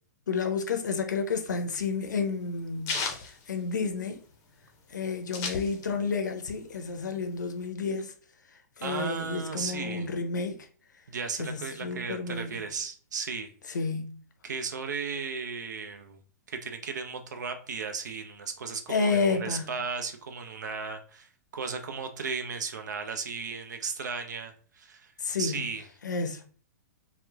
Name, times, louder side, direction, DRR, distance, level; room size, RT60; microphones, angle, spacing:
voice 1, 0.3-2.9 3.2-4.2 4.9-8.1 8.8-10.7 11.4-12.7 13.7-14.2 18.9-19.7 25.2-25.6 26.0-26.4, left 4 dB, 80° left, 0.5 m, -30 dB
sound 1, 1.1-4.3 4.6-4.7 4.9-6.2 6.5-7.7, left 4 dB, 30° left, 0.6 m, -35 dB
voice 2, 8.8-10.1 11.1-13.5 14.4-16.2 16.5-25.1 25.4-25.8, right 5 dB, 75° right, 0.5 m, -35 dB
2.9 x 2.1 x 2.2 m
hypercardioid pair, 120°, 10 cm